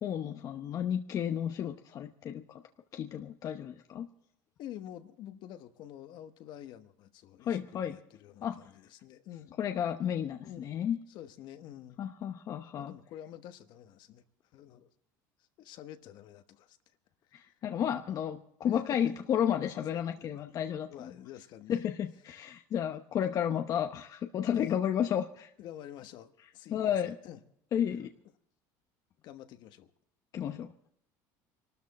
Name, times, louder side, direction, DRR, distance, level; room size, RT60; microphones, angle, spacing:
voice 1, 0.0-2.6 2.9-4.1 7.4-8.0 8.4-8.6 9.6-11.0 12.0-12.9 17.3-21.1 21.7-25.5 26.7-27.1 27.7-28.1 30.3-30.7, left 9 dB, 40° left, 0.8 m, -32 dB
voice 2, 4.6-9.5 10.4-10.8 11.1-12.0 12.8-14.2 14.5-14.9 15.6-16.8 18.7-19.1 19.8-20.4 20.9-21.8 24.5-24.8 25.6-27.4 29.2-29.9, left 11 dB, 60° left, 1.2 m, -48 dB
23.5 x 13.0 x 4.2 m
supercardioid pair, 125°, 9 cm